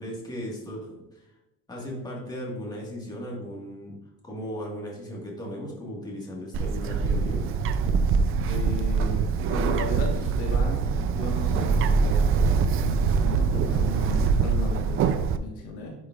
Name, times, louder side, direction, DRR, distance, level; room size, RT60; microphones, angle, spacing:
voice 1, 0.0-1.3 1.7-4.0 4.2-7.5, equal, 10° left, -2 dB, 1.7 m, -36 dB
Bird, 6.5-15.4, right 5 dB, 45° right, 0.4 m, -24 dB
voice 2, 8.5-12.4 12.8-15.9, left 2 dB, 70° left, 0 dB, 1.5 m, -36 dB
10.5 x 5.0 x 2.5 m, 0.92 s
cardioid pair, 135°, 31 cm